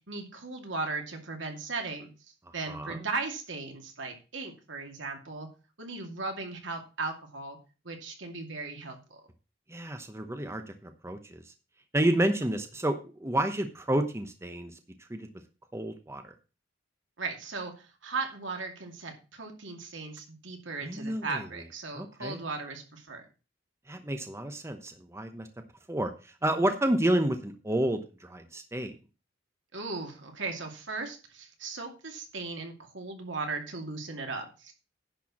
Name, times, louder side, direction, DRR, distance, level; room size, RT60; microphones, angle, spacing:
voice 1, 0.1-2.1 2.5-5.5 5.8-7.6 7.8-9.2 12.4-12.5 17.2-23.2 29.7-34.7, right 3 dB, 80° right, 3 dB, 2.5 m, -37 dB
voice 2, 2.7-3.0 9.7-11.4 11.9-14.7 15.1-15.3 15.7-16.3 20.8-21.4 22.0-22.4 23.9-25.5 25.9-26.1 26.4-28.9, right 1 dB, 15° right, 7 dB, 0.9 m, -30 dB
10.5 x 4.7 x 7.2 m, 0.32 s
head